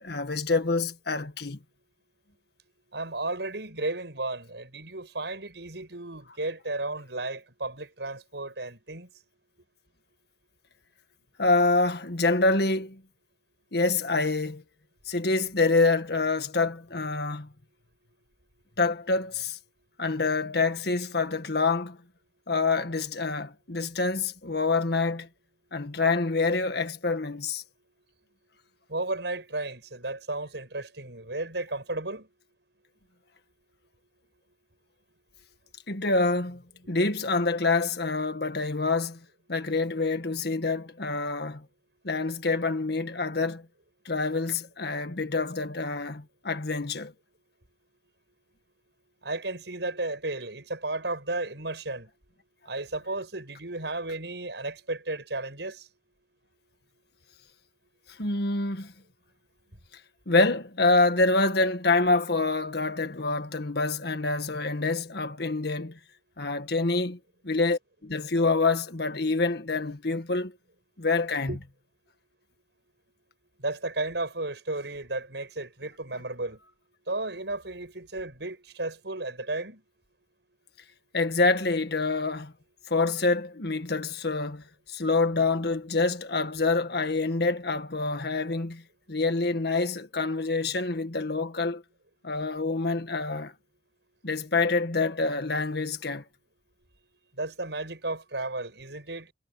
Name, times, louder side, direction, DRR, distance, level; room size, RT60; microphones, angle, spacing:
voice 1, 0.0-1.6 11.4-13.0 13.7-14.6 15.1-17.5 18.8-19.6 20.0-22.0 22.5-25.3 25.7-27.6 35.9-36.6 36.9-39.2 39.5-41.6 42.0-43.6 44.1-47.1 58.2-58.9 60.3-66.0 66.4-67.2 67.4-70.5 71.0-71.6 81.1-82.5 82.9-88.8 89.1-91.8 92.2-93.5 94.2-96.2, left 3 dB, 65° left, 1.8 m, -26 dB
voice 2, 2.9-9.1 28.9-32.3 49.2-52.1 52.6-55.9 71.5-71.6 73.6-76.6 77.1-79.8 97.3-99.3, right 2 dB, 75° right, 7.4 m, -34 dB
head